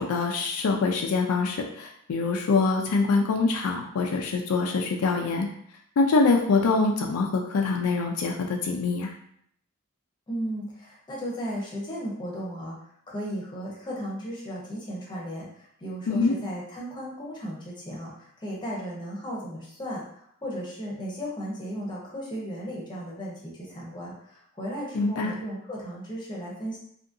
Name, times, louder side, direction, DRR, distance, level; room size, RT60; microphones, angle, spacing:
voice 1, 0.0-5.5 6.0-9.1 16.1-16.3 24.9-25.3, left 4 dB, 75° left, 2 dB, 0.4 m, -24 dB
voice 2, 10.3-12.8 13.1-26.8, equal, 20° left, -4 dB, 0.7 m, -35 dB
2.7 x 2.6 x 2.6 m, 0.68 s
head